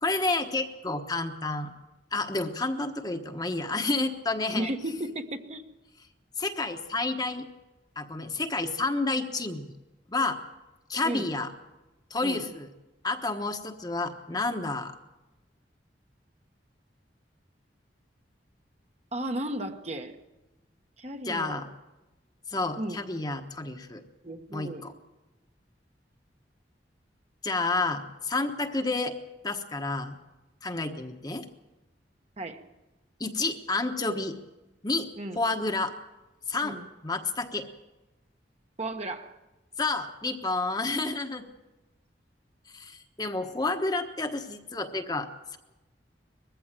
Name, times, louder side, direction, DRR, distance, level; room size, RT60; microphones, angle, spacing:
voice 1, 0.0-1.7 2.1-4.7 6.4-7.5 8.0-9.7 10.1-10.4 10.9-11.5 12.1-12.7 13.0-15.0 21.3-21.7 22.5-24.0 24.5-24.9 27.4-29.2 29.4-30.2 30.6-31.4 33.2-34.3 34.8-35.1 35.3-35.9 36.5-36.8 37.0-37.7 39.8-41.4 42.7-45.6, left 3 dB, 20° left, 5 dB, 1.2 m, -30 dB
voice 2, 4.6-5.6 11.0-11.3 12.2-12.5 19.1-20.2 21.0-21.6 22.8-23.0 24.2-24.9 32.4-32.6 35.2-35.4 36.6-36.9 38.8-39.4, right 1 dB, 35° right, 5 dB, 1.2 m, -34 dB
21.0 x 15.0 x 9.1 m, 1.1 s
head